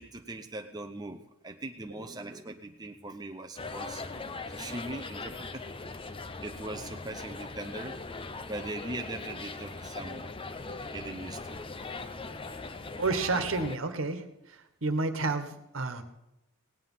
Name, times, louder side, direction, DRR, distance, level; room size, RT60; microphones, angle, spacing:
voice 1, 0.0-4.0 4.5-5.6 6.4-8.0 8.5-10.3 10.9-11.6, right 2 dB, 20° right, 4 dB, 0.7 m, -40 dB
sound 1, 3.6-13.8, left 3 dB, 25° left, 0.6 m, -40 dB
voice 2, 13.0-14.2 14.5-16.0, right 3 dB, 70° right, 8 dB, 1.4 m, -30 dB
17.5 x 9.7 x 5.6 m, 0.90 s
head